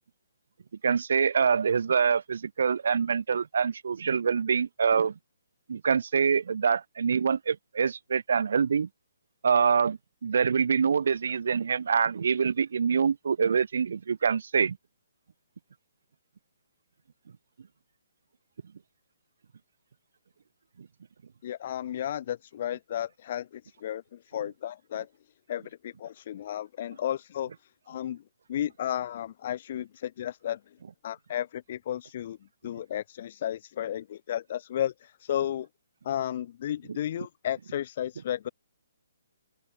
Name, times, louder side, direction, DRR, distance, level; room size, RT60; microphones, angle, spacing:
voice 1, 0.8-5.1 5.7-8.9 9.4-14.8, right 6 dB, 70° right, 2.4 m, -25 dB
voice 2, 21.4-25.1 25.5-28.2 28.5-30.8 31.0-32.4 32.6-35.7 36.0-38.5, left 11 dB, 50° left, 1.7 m, -33 dB
open air
hypercardioid pair, 145°, 0 cm